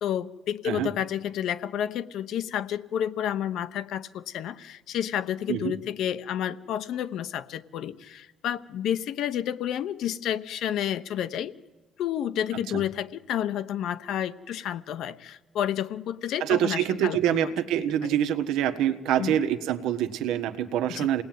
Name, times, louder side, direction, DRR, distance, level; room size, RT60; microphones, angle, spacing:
voice 1, 0.0-11.5 12.0-17.5 19.2-19.4 20.9-21.1, left 10 dB, 60° left, 12 dB, 1.0 m, -30 dB
voice 2, 16.4-21.2, right 10 dB, 85° right, 9 dB, 1.5 m, -26 dB
28.5 x 19.0 x 9.4 m, 1.2 s
cardioid pair, 160°, 0 cm